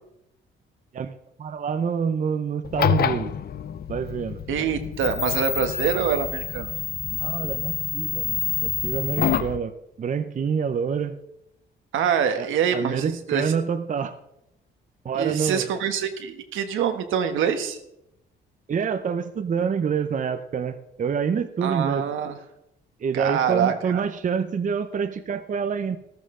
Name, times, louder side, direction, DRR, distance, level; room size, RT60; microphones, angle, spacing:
voice 1, 1.4-3.3 3.9-4.4 7.1-9.7 10.0-11.2 12.4-14.1 15.0-15.7 18.7-22.0 23.0-26.0, right 6 dB, 40° right, 9 dB, 0.7 m, -27 dB
sound 1, 2.6-9.6, left 9 dB, 50° left, 0.7 m, -27 dB
voice 2, 4.5-6.7 11.9-13.5 15.1-17.8 21.6-22.4 23.1-24.0, right 8 dB, 80° right, 7 dB, 1.4 m, -25 dB
13.5 x 13.5 x 3.8 m, 0.82 s
cardioid pair, 90°, 20 cm